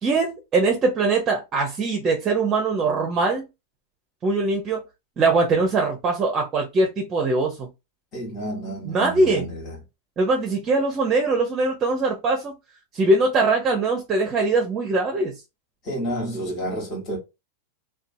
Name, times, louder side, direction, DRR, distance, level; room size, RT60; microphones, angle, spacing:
voice 1, 0.0-3.5 4.2-4.8 5.2-7.7 8.9-9.4 10.2-12.5 12.9-15.3, right 3 dB, 30° right, 0.6 m, -22 dB
voice 2, 8.1-9.8 15.8-17.2, right 1 dB, 30° left, 1.2 m, -30 dB
2.7 x 2.2 x 2.6 m
supercardioid pair, 130°, 0 cm